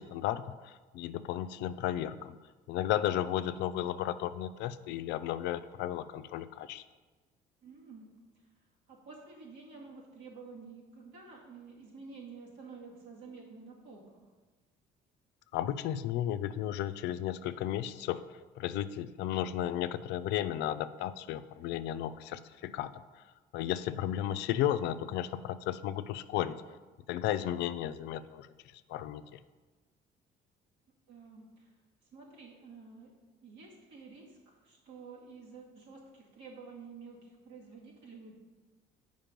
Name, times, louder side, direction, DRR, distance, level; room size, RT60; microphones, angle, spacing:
voice 1, 0.0-2.3 2.7-6.8 15.5-18.2 18.6-22.9 23.5-26.6 27.1-28.5 28.9-29.4, left 11 dB, 80° left, 12 dB, 0.4 m, -34 dB
voice 2, 7.6-8.1 8.9-14.0 31.1-31.7 32.1-33.1 33.4-38.3, right 4 dB, 80° right, -4 dB, 2.3 m, -50 dB
7.5 x 5.2 x 5.2 m, 1.3 s
cardioid pair, 95°, 17 cm